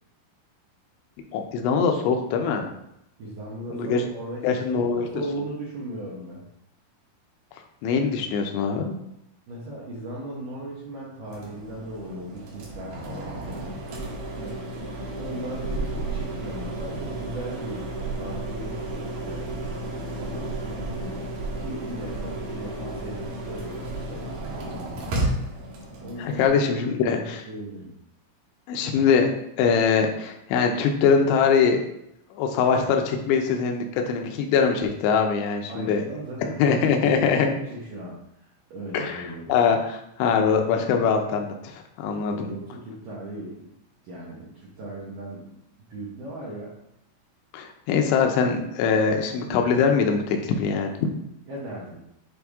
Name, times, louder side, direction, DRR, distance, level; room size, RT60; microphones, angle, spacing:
voice 1, 1.3-2.7 3.7-4.0 4.4-5.1 7.8-8.9 26.2-27.4 28.7-29.3 29.6-31.8 32.4-36.0 36.6-37.5 38.9-39.2 39.5-42.5 47.5-51.1, left 6 dB, 80° left, 3 dB, 2.7 m, -22 dB
voice 2, 3.2-6.4 9.5-13.8 14.4-14.6 15.2-19.5 20.2-24.4 26.0-27.9 35.7-39.6 42.1-43.7 44.0-45.5 45.9-46.7 51.5-52.0, right 1 dB, 90° right, -6 dB, 1.8 m, -37 dB
sound 1, 11.3-26.5, right 2 dB, 65° right, 2.4 m, -33 dB
8.8 x 3.3 x 3.5 m, 0.81 s
omnidirectional pair, 5.8 m